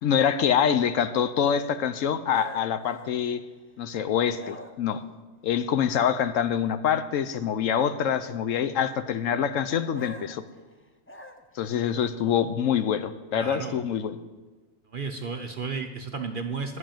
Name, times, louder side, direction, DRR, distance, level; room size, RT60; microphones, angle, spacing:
voice 1, 0.0-3.4 3.8-5.0 5.4-10.4 11.5-14.2, left 8 dB, 70° left, 12 dB, 0.9 m, -25 dB
sound 1, 2.3-3.9 4.3-5.0 9.9-11.7, left 2 dB, 15° left, 0.5 m, -45 dB
voice 2, 13.4-13.8 14.9-16.8, right 4 dB, 50° right, 5 dB, 0.7 m, -33 dB
11.5 x 6.3 x 8.8 m, 1.2 s
omnidirectional pair, 1.5 m